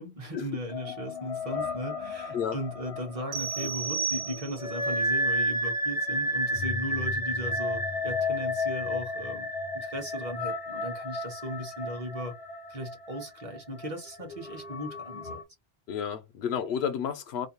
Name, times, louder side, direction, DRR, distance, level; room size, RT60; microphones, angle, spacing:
voice 1, 0.0-9.5 9.7-12.3 12.7-15.4, equal, 40° right, 0.8 m, -37 dB
sound 1, 0.7-15.4, left 1 dB, 45° left, 0.5 m, -32 dB
sound 2, 3.3-4.9, right 6 dB, 90° right, 0.9 m, -33 dB
voice 2, 15.9-17.5, left 8 dB, 80° left, 0.8 m, -31 dB
2.6 x 2.1 x 2.8 m
omnidirectional pair, 1.0 m